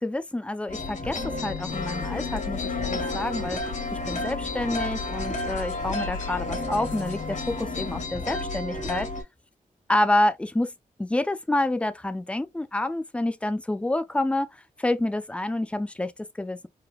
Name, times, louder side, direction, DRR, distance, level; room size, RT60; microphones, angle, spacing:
voice 1, 0.0-3.6 3.9-9.1 9.9-10.7 11.0-14.5 14.8-16.7, left 1 dB, 10° left, 0.4 m, -28 dB
sound 1, 0.7-9.2, left 2 dB, 60° left, 2.2 m, -33 dB
sound 2, 1.7-8.1, left 4 dB, 75° left, 1.4 m, -35 dB
4.7 x 3.3 x 2.4 m
wide cardioid pair, 165°, 14 cm